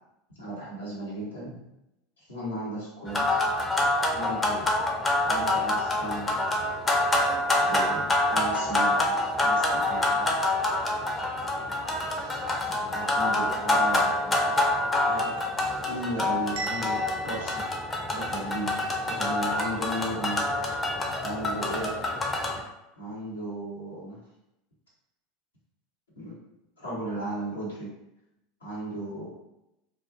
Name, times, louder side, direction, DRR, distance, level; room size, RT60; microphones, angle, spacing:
voice 1, 0.4-1.6 2.2-3.3 3.7-4.7 5.2-6.3 7.6-9.0 9.3-10.4 12.1-12.4 12.8-14.6 15.0-17.6 18.1-18.8 19.0-20.4 21.2-21.9 23.0-24.2 26.2-26.4 26.8-27.9 28.6-29.3, right 1 dB, 85° left, -8 dB, 1.1 m, -36 dB
sound 1, 3.1-22.6, left 1 dB, 20° left, 0.5 m, -26 dB
Bell, 16.6-18.6, right 2 dB, 60° right, 0.3 m, -38 dB
2.4 x 2.3 x 2.5 m, 0.88 s
figure-of-eight pair, 80°, 0 cm